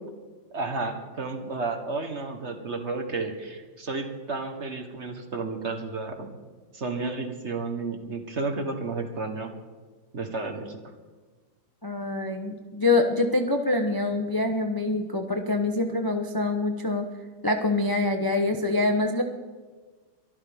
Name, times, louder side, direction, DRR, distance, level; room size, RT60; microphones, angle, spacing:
voice 1, 0.5-6.3 6.7-9.5 10.1-10.8, right 3 dB, 40° right, 5 dB, 1.5 m, -32 dB
voice 2, 11.8-17.1 17.4-19.2, left 2 dB, 25° left, 4 dB, 0.5 m, -25 dB
23.5 x 13.5 x 3.6 m, 1.4 s
omnidirectional pair, 2.1 m